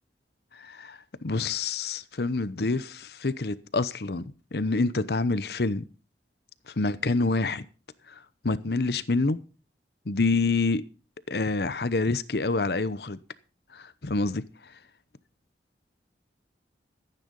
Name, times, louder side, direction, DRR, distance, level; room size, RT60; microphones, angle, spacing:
voice 1, 0.5-5.8 6.7-7.7 8.4-9.4 10.1-10.8 11.3-13.2 13.7-14.4, left 3 dB, 65° left, 0.8 m, -27 dB
14.5 x 9.2 x 5.3 m
head